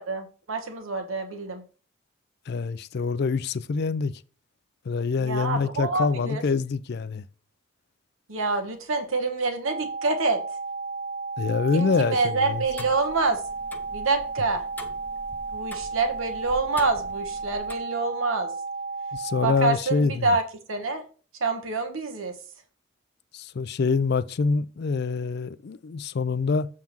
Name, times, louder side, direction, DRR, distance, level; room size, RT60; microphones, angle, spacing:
voice 1, 0.0-1.6 5.2-6.4 8.3-10.4 11.7-13.4 13.9-14.6 15.5-18.5 19.4-20.4 20.7-21.0 21.4-22.4, right 3 dB, 75° right, 1.1 m, -26 dB
voice 2, 2.5-4.1 4.9-7.2 11.4-12.2 12.5-12.6 19.1-20.3 23.3-26.7, left 4 dB, 50° left, 0.4 m, -25 dB
sound 1, 9.7-19.7, right 4 dB, 50° right, 0.8 m, -33 dB
Tick-tock, 12.5-17.8, left 1 dB, 10° left, 0.6 m, -44 dB
7.5 x 3.6 x 5.9 m
head